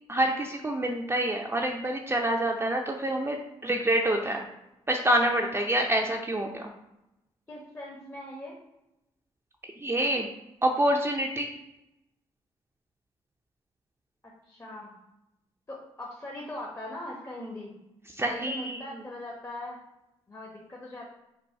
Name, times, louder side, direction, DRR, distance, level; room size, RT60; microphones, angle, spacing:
voice 1, 0.1-3.4 3.6-4.5 4.9-6.7 9.8-10.3 10.6-11.5 18.2-18.8, right 1 dB, 20° right, 1 dB, 0.6 m, -26 dB
voice 2, 7.5-8.6 14.2-15.0 15.7-17.8 18.2-19.8 20.3-21.1, left 1 dB, 25° left, -3 dB, 1.0 m, -40 dB
4.0 x 2.4 x 4.7 m, 0.91 s
supercardioid pair, 50°, 12 cm